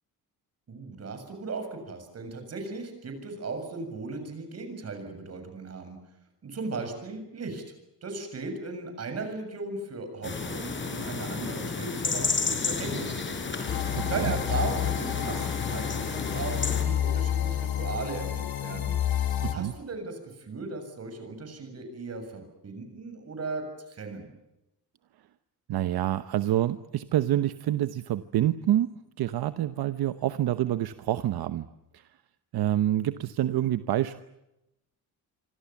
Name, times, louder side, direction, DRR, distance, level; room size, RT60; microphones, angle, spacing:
voice 1, 0.7-6.0 6.4-7.6 8.0-19.0 19.5-24.3, right 3 dB, 40° right, 6 dB, 7.2 m, -37 dB
sound 1, 10.2-16.8, left 4 dB, 30° left, 4.3 m, -32 dB
sound 2, 13.7-19.5, left 11 dB, 70° left, 3.6 m, -29 dB
voice 2, 13.9-14.3 19.4-19.7 25.7-28.9 29.2-31.7 31.9-32.0 32.5-34.3, right 12 dB, 70° right, 11 dB, 1.0 m, -27 dB
27.0 x 25.5 x 7.3 m, 0.92 s
wide cardioid pair, 170°, 38 cm